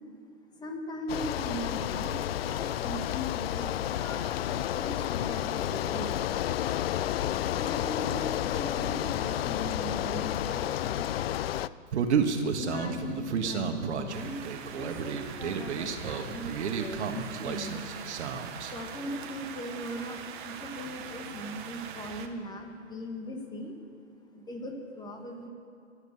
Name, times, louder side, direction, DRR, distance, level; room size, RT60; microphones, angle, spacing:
voice 1, 0.5-6.5 7.5-11.4 12.5-17.8 18.7-23.7 24.2-25.5, left 1 dB, 10° left, 3 dB, 1.8 m, -39 dB
Bicycle, 1.1-11.7, left 12 dB, 50° left, 0.5 m, -31 dB
Human voice, 11.9-18.7, right 6 dB, 60° right, 1.8 m, -31 dB
sound 1, 14.1-22.3, right 8 dB, 40° right, 1.4 m, -42 dB
24.0 x 8.0 x 7.0 m, 2.8 s
hypercardioid pair, 130°, 38 cm